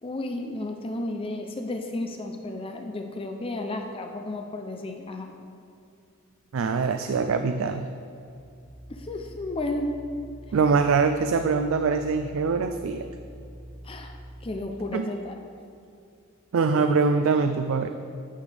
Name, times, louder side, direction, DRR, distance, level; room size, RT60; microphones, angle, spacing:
voice 1, 0.0-5.3 8.9-10.0 13.8-14.2 14.4-15.4, left 2 dB, 25° left, 4 dB, 0.5 m, -33 dB
voice 2, 6.5-7.9 10.5-13.1 14.9-15.1 16.5-17.9, right 4 dB, 70° right, 8 dB, 0.4 m, -23 dB
sound 1, 8.3-14.5, right 1 dB, 90° right, 2.2 m, -45 dB
11.0 x 8.5 x 3.4 m, 2.5 s
head